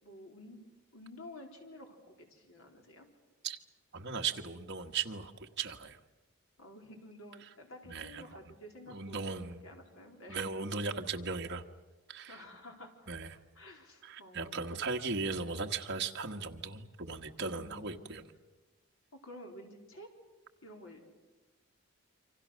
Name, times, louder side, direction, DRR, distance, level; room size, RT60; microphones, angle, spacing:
voice 1, 0.0-0.7 0.9-3.1 6.6-9.3 9.6-10.5 12.2-13.1 13.5-14.9 17.4-18.1 19.1-20.1 20.6-21.1, left 1 dB, 70° left, 2 dB, 4.2 m, -51 dB
voice 2, 3.9-6.0 7.9-8.2 8.9-9.6 10.3-11.6 12.1-12.4 13.1-13.4 14.0-18.3, right 4 dB, 55° right, 3 dB, 1.5 m, -37 dB
28.0 x 25.0 x 6.5 m, 1.2 s
head